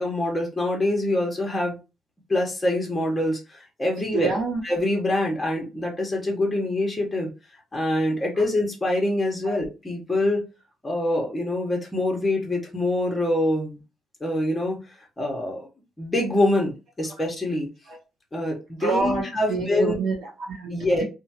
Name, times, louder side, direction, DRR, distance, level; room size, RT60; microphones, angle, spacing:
voice 1, 0.0-1.8 2.3-4.3 4.6-7.3 7.7-10.4 10.8-13.8 14.2-14.8 15.2-15.7 16.0-16.7 17.0-17.7 18.3-19.9 20.7-21.0, left 1 dB, 15° left, 0 dB, 1.2 m, -25 dB
voice 2, 4.1-4.6 9.4-9.6 17.9-18.0 18.8-21.0, right 4 dB, 80° right, -3 dB, 0.9 m, -27 dB
2.8 x 2.3 x 2.9 m, 0.29 s
cardioid pair, 90°, 0 cm